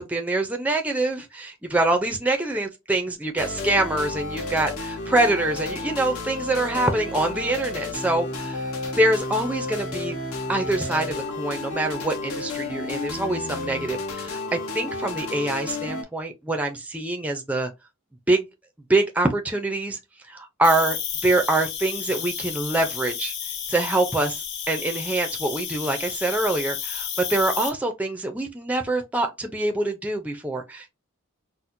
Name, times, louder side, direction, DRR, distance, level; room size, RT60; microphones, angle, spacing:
voice 1, 0.0-8.7 9.0-10.2 10.5-17.7 18.3-18.4 18.9-20.0 20.3-21.0 21.2-23.3 23.7-30.9, right 2 dB, 5° right, 0.4 m, -25 dB
sound 1, 3.4-16.0, left 2 dB, 90° left, 1.1 m, -32 dB
Cricket, 20.6-27.7, left 8 dB, 50° left, 0.8 m, -32 dB
4.2 x 2.1 x 2.5 m
head